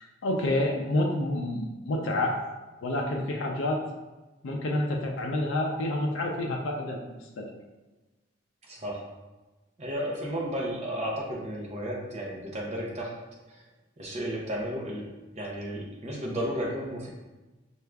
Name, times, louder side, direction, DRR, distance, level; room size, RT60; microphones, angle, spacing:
voice 1, 0.0-2.4 2.8-3.8 4.4-7.5, left 1 dB, 75° left, 0 dB, 0.5 m, -28 dB
voice 2, 8.7-9.1 9.8-13.2 14.0-17.1, equal, 35° right, -2 dB, 0.7 m, -33 dB
4.6 x 2.4 x 3.3 m, 1.2 s
head